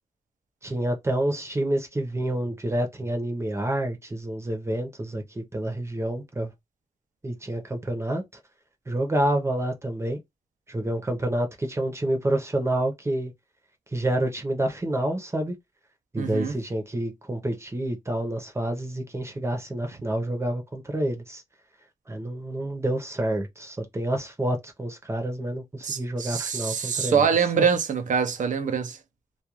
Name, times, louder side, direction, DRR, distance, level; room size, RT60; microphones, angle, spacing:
voice 1, 0.6-6.5 7.2-8.2 8.9-10.2 10.7-13.3 13.9-15.6 16.1-21.4 22.1-27.3 27.6-27.7, right 1 dB, 20° right, 0.7 m, -28 dB
voice 2, 16.2-16.5 25.8-29.0, right 6 dB, 85° right, 0.5 m, -24 dB
2.3 x 2.2 x 2.9 m
wide cardioid pair, 125°, 13 cm